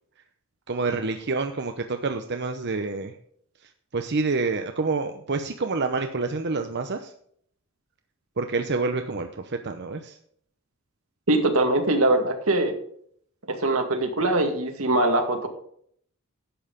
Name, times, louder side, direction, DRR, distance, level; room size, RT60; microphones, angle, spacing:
voice 1, 0.7-3.1 3.9-7.1 8.4-10.2, right 3 dB, 55° right, 7 dB, 0.8 m, -28 dB
voice 2, 11.3-12.7 13.5-15.5, right 2 dB, 85° right, 5 dB, 2.0 m, -22 dB
11.5 x 7.9 x 5.2 m, 0.64 s
head